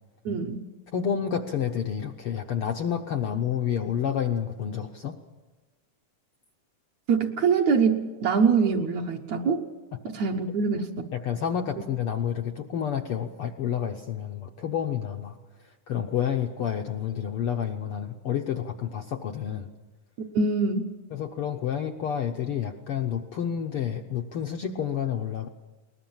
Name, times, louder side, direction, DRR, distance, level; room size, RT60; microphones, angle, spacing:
voice 1, 0.3-0.6 7.1-9.7 10.1-10.9 20.3-20.9, right 5 dB, 65° right, 1 dB, 2.3 m, -24 dB
voice 2, 0.9-5.2 9.9-10.0 11.1-19.7 21.1-25.5, left 8 dB, 70° left, 4 dB, 1.4 m, -29 dB
21.5 x 20.0 x 7.3 m, 1.2 s
omnidirectional pair, 3.6 m